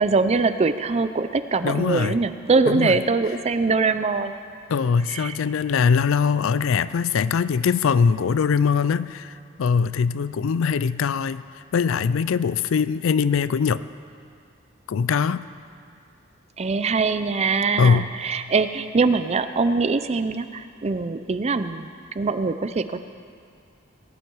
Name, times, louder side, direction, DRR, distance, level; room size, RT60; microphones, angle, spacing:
voice 1, 0.0-4.4 5.1-5.4 16.6-23.0, right 4 dB, 30° right, 11 dB, 0.5 m, -23 dB
voice 2, 1.6-2.2 2.7-3.0 4.7-11.4 11.7-13.8 14.9-15.5 17.8-18.1, left 6 dB, 70° left, 15 dB, 0.4 m, -22 dB
18.5 x 11.0 x 4.6 m, 2.3 s
head